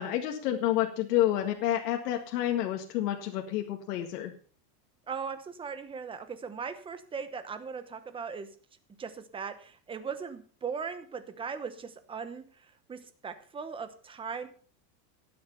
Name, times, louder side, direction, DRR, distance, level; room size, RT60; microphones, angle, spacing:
voice 1, 0.0-4.3, left 12 dB, 70° left, 3 dB, 1.9 m, -29 dB
voice 2, 5.1-8.5 9.0-14.5, right 6 dB, 10° right, 11 dB, 0.9 m, -39 dB
12.0 x 9.5 x 5.6 m, 0.43 s
supercardioid pair, 155°, 48 cm